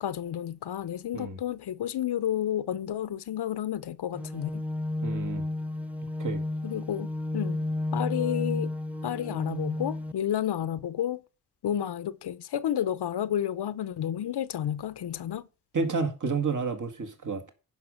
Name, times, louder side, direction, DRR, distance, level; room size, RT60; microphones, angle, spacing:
voice 1, 0.0-4.6 6.6-7.6 7.9-8.7 9.0-11.2 11.6-15.4, left 10 dB, 80° left, 0.8 m, -31 dB
sound 1, 4.1-10.1, left 2 dB, 5° right, 1.0 m, -32 dB
voice 2, 5.0-5.4 6.2-6.4 15.7-17.5, right 4 dB, 50° right, 2.0 m, -30 dB
10.5 x 5.4 x 6.4 m
cardioid pair, 60°, 40 cm